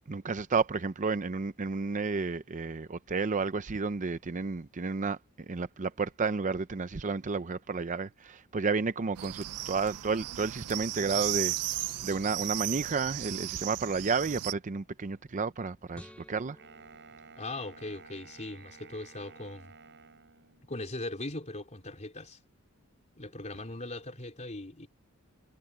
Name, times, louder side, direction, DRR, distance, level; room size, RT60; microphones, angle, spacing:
voice 1, 0.1-11.5 12.0-16.6, right 4 dB, 35° right, 0.6 m, -31 dB
sound 1, 9.2-14.5, right 16 dB, 85° right, 0.4 m, -35 dB
sound 2, 15.9-18.3, equal, 5° left, 5.8 m, -54 dB
Wind instrument woodwind instrument, 16.6-20.8, right 5 dB, 55° right, 7.5 m, -53 dB
voice 2, 17.4-19.8 20.7-22.4 23.2-24.9, left 2 dB, 30° left, 3.9 m, -39 dB
head